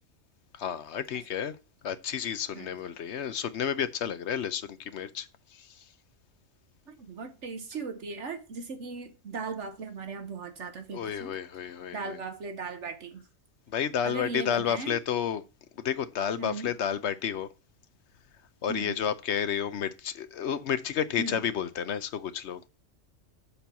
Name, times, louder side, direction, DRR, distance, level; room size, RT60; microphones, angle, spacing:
voice 1, 0.5-1.6 1.8-5.7 10.9-12.2 13.7-15.4 15.8-17.5 18.6-22.6, left 8 dB, 65° left, 0.9 m, -31 dB
voice 2, 6.9-11.3 11.9-13.2 14.0-15.0 16.4-16.7 18.7-19.0 21.2-21.4, right 4 dB, 65° right, 1.3 m, -37 dB
6.9 x 4.5 x 6.7 m
omnidirectional pair, 1.3 m